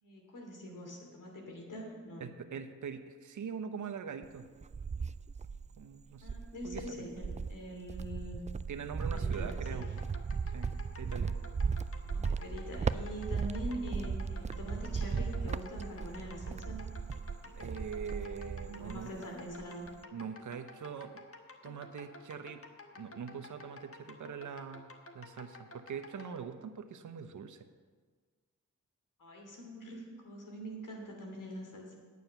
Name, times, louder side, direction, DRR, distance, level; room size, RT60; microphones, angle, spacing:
voice 1, 0.0-2.3 6.2-8.4 9.1-9.9 12.0-16.9 17.6-17.8 18.6-19.9 29.2-31.9, equal, 75° left, 1 dB, 2.8 m, -44 dB
voice 2, 2.2-4.5 5.8-6.3 6.6-7.1 8.7-9.9 10.5-10.7 11.0-11.3 17.4-19.1 20.1-21.2 21.6-22.6 23.0-27.7, right 6 dB, 70° right, 8 dB, 0.9 m, -43 dB
Cricket, 4.2-5.8 6.2-19.2 19.5-20.0, right 5 dB, 25° right, 0.3 m, -37 dB
sound 1, 9.0-26.4, left 3 dB, 45° left, 1.3 m, -52 dB
9.5 x 9.3 x 5.8 m, 1.5 s
cardioid pair, 60°, 32 cm